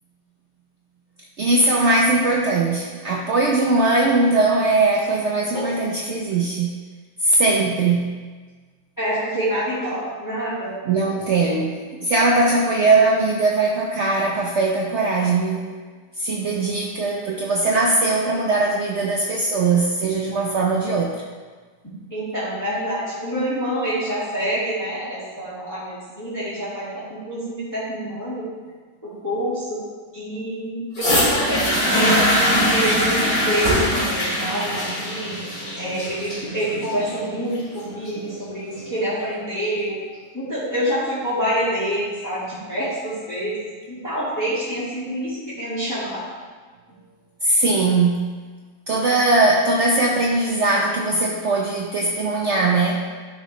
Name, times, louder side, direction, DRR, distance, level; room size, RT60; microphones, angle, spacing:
voice 1, 1.4-6.7 7.2-8.1 10.9-15.6 16.2-21.2 47.4-48.3 48.9-53.0, right 2 dB, 60° right, -2 dB, 0.9 m, -20 dB
voice 2, 9.0-10.7 11.4-11.5 22.1-28.5 29.0-29.8 30.1-35.3 35.8-40.0 40.3-43.5 43.9-46.2, equal, 10° left, -12 dB, 2.0 m, -27 dB
sound 1, 31.0-39.0 39.8-39.9, equal, 65° left, 2.7 m, -22 dB
11.5 x 5.0 x 3.2 m, 1.5 s
omnidirectional pair, 1.6 m